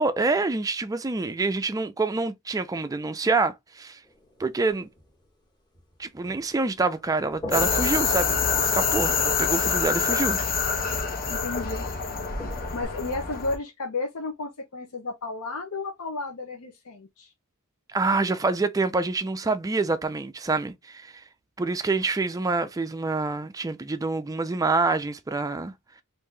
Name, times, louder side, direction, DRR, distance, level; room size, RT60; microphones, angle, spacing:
voice 1, 0.0-4.0 4.4-4.9 6.0-10.4 17.9-21.2 21.6-25.7, right 3 dB, 15° right, 0.3 m, -26 dB
sound 1, 4.0-5.3 5.7-6.6 6.9-9.8 11.3-11.4 12.4-12.8, left 1 dB, 20° left, 1.4 m, -42 dB
sound 2, 7.5-13.6, left 5 dB, 40° left, 1.0 m, -26 dB
voice 2, 11.3-11.9 12.7-17.3, left 3 dB, 70° left, 0.8 m, -33 dB
3.6 x 2.6 x 3.2 m
head